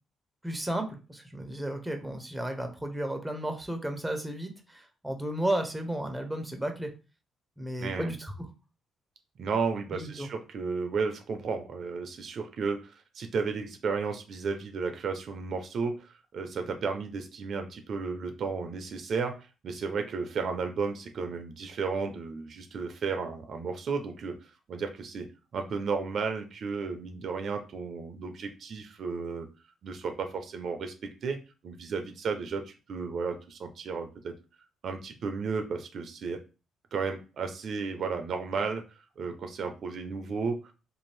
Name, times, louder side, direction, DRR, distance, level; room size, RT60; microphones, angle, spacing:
voice 1, 0.4-6.9 7.6-8.5 9.9-10.3, right 1 dB, 5° right, 4 dB, 0.6 m, -33 dB
voice 2, 7.8-8.1 9.4-12.8 13.1-19.3 19.6-24.3 24.7-25.3 25.5-29.5 29.8-30.9 31.2-31.4 31.6-34.3 34.8-36.4 36.9-38.8 39.2-40.7, right 5 dB, 60° right, 6 dB, 0.4 m, -33 dB
2.6 x 2.4 x 3.1 m, 0.32 s
cardioid pair, 90°, 0 cm